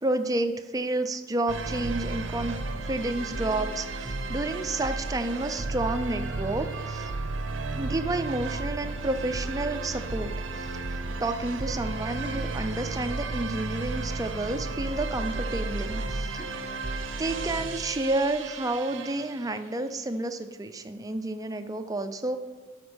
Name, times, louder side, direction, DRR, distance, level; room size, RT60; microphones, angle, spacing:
voice 1, 0.0-2.6 2.9-7.1 7.8-10.9 11.2-16.5 17.2-22.4, right 2 dB, 20° right, 8 dB, 0.5 m, -30 dB
sound 1, 1.5-19.6, right 3 dB, 80° right, 0.7 m, -33 dB
12.0 x 4.4 x 6.3 m, 1.3 s
head